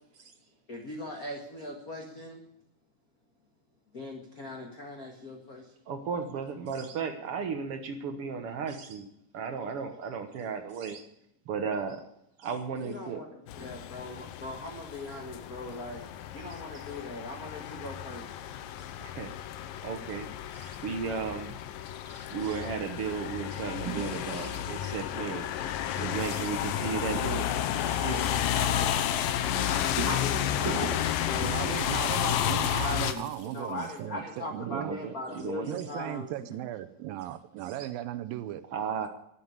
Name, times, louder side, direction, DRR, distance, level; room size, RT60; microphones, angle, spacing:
voice 1, 0.7-2.4 3.9-5.7 12.8-16.1 16.3-18.4 28.6-29.0 30.1-32.0 32.8-33.2 33.5-36.3, left 2 dB, 35° left, 2 dB, 1.6 m, -39 dB
voice 2, 5.9-9.1 9.3-11.0 11.5-12.0 12.4-13.2 16.5-16.6 19.0-19.3 19.8-21.6 22.1-25.5 25.9-27.5 27.7-28.4 29.7-29.8 34.6-35.9 38.7-39.1, right 6 dB, 70° right, 7 dB, 1.4 m, -35 dB
sound 1, 13.5-33.1, left 10 dB, 80° left, 2.6 m, -32 dB
sound 2, 23.5-33.2, right 6 dB, 40° right, 2.4 m, -43 dB
voice 3, 31.4-35.0 35.6-38.6, right 13 dB, 85° right, 11 dB, 2.5 m, -37 dB
sound 3, 32.0-34.0, left 8 dB, 60° left, 2.5 m, -49 dB
12.5 x 9.2 x 9.5 m, 0.77 s
omnidirectional pair, 4.0 m